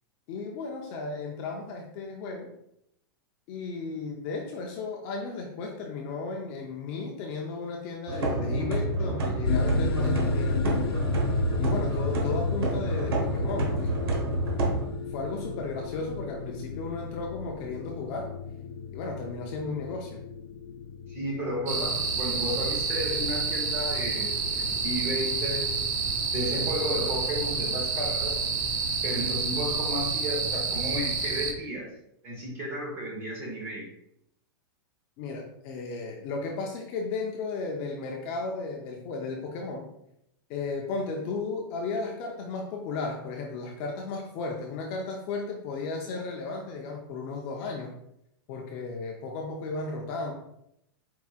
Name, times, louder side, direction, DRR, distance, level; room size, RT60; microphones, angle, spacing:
voice 1, 0.3-2.5 3.5-14.2 15.1-18.3 18.9-20.2 35.2-39.9 40.5-47.9 48.5-50.3, left 3 dB, 25° left, 1 dB, 0.4 m, -35 dB
sound 1, 8.1-14.9, right 1 dB, 80° right, 1.1 m, -28 dB
sound 2, 9.4-28.0, left 3 dB, 85° left, 0.5 m, -35 dB
voice 2, 21.1-25.8 26.3-28.4 29.0-31.9 32.2-33.9, equal, 20° right, -2 dB, 1.0 m, -33 dB
sound 3, 21.7-31.5, right 4 dB, 45° right, 0.5 m, -29 dB
4.5 x 4.1 x 2.4 m, 0.78 s
supercardioid pair, 175°, 13 cm